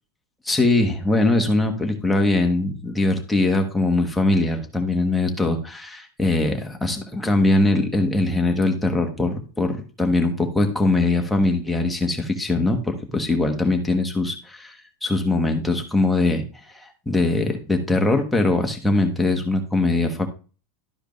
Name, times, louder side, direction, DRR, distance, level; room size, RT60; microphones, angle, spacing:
voice 1, 0.4-16.4 16.7-20.3, left 2 dB, 5° left, 3 dB, 1.4 m, -21 dB
12.0 x 4.8 x 3.2 m, 0.35 s
supercardioid pair, 140°, 0 cm